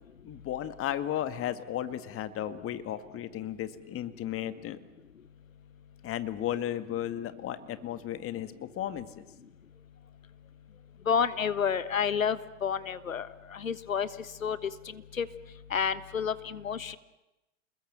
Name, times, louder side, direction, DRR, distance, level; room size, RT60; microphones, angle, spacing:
voice 1, 0.2-4.8 6.0-9.2, left 11 dB, 35° left, 12 dB, 2.0 m, -34 dB
voice 2, 11.1-13.3 13.5-14.1 14.4-14.6 15.2-15.3 15.7-17.0, left 7 dB, 90° left, 15 dB, 1.3 m, -29 dB
29.5 x 21.0 x 7.7 m, 0.98 s
hypercardioid pair, 95°, 39 cm